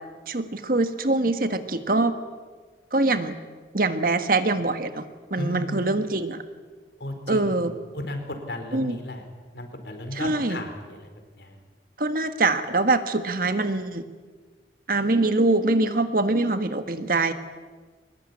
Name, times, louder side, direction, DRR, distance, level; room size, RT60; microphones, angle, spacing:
voice 1, 0.3-2.2 2.9-3.4 3.7-5.0 5.3-6.4 7.3-7.7 8.7-9.0 10.1-10.6 12.0-14.1 14.9-17.3, right 2 dB, 50° right, 9 dB, 1.6 m, -23 dB
voice 2, 5.4-5.9 7.0-7.5 7.9-9.2 9.5-11.6, left 1 dB, 65° left, 5 dB, 4.5 m, -34 dB
23.0 x 20.5 x 9.9 m, 1.4 s
head